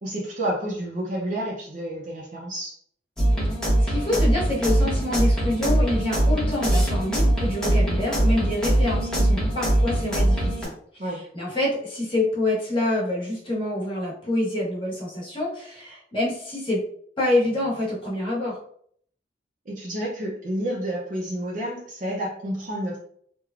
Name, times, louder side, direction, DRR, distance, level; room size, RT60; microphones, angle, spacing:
voice 1, 0.0-2.8 11.0-11.2 19.7-23.0, right 1 dB, 45° right, -4 dB, 0.5 m, -30 dB
sound 1, 3.2-10.7, right 1 dB, 5° left, 0.9 m, -22 dB
voice 2, 3.8-10.7 11.1-16.8 17.2-18.6, left 1 dB, 30° left, -7 dB, 1.1 m, -26 dB
3.1 x 2.2 x 2.4 m, 0.62 s
head